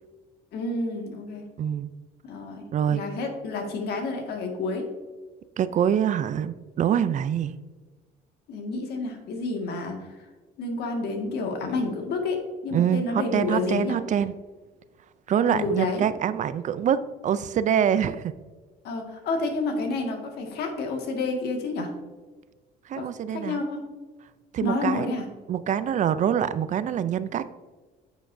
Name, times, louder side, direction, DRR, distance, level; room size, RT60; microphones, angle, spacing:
voice 1, 0.5-1.5 2.2-4.9 8.5-10.3 10.6-14.0 15.5-16.1 18.8-21.9 22.9-23.9 24.6-25.3, left 3 dB, 70° left, 3 dB, 1.9 m, -30 dB
voice 2, 1.6-1.9 2.7-3.0 5.6-7.6 12.7-14.3 15.3-18.3 22.9-23.6 24.5-25.1 25.5-27.5, right 9 dB, 45° right, 14 dB, 0.5 m, -25 dB
9.8 x 8.0 x 2.7 m, 1.3 s
cardioid pair, 110°, 17 cm